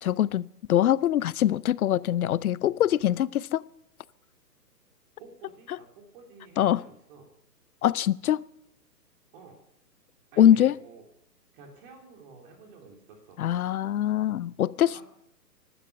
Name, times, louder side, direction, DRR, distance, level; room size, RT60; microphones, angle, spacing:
voice 1, 0.0-3.6 6.6-6.8 7.8-8.4 10.4-10.8 13.4-15.0, left 11 dB, 60° left, 0.7 m, -23 dB
voice 2, 5.2-7.2 9.3-9.6 10.3-11.0 11.5-13.4 14.9-15.0, right 4 dB, 35° right, 3.4 m, -50 dB
17.5 x 12.0 x 6.8 m
hypercardioid pair, 140°, 49 cm